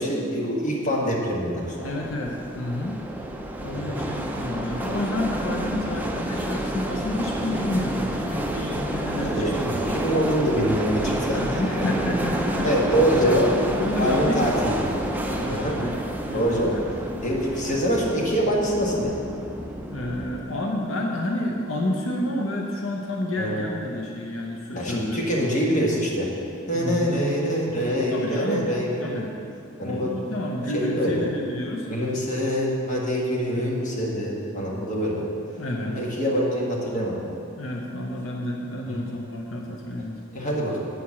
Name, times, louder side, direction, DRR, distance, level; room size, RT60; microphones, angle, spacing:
voice 1, 0.0-1.9 3.7-4.0 9.2-11.8 12.6-13.5 14.0-14.9 15.5-15.8 16.3-16.7 17.2-19.1 23.4-23.6 24.7-26.3 26.7-29.2 29.8-30.1 30.7-31.3 31.9-35.3 35.8-37.3 38.9-39.0 40.3-40.9, equal, 40° left, -3 dB, 1.5 m, -25 dB
sound 1, 1.6-20.4, equal, 10° right, 0.5 m, -29 dB
voice 2, 1.8-3.0 3.6-9.9 11.2-12.9 13.2-14.6 15.2-16.8 19.9-25.5 26.7-27.1 28.1-28.7 29.0-29.3 29.8-31.9 35.6-36.0 37.6-40.2, left 1 dB, 85° left, 0 dB, 0.8 m, -30 dB
8.7 x 4.7 x 7.2 m, 2.5 s
head